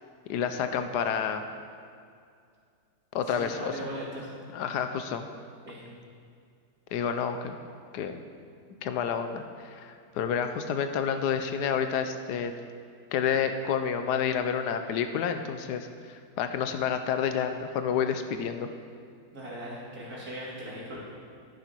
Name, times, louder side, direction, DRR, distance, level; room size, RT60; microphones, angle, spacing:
voice 1, 0.3-1.4 3.1-3.7 4.5-5.3 6.9-7.6 7.9-8.2 8.8-12.5 13.1-18.7, left 7 dB, 85° left, 8 dB, 1.3 m, -29 dB
voice 2, 3.2-4.3 5.6-5.8 19.3-21.0, equal, 60° right, -6 dB, 3.2 m, -39 dB
10.5 x 10.5 x 4.6 m, 2.3 s
omnidirectional pair, 1.8 m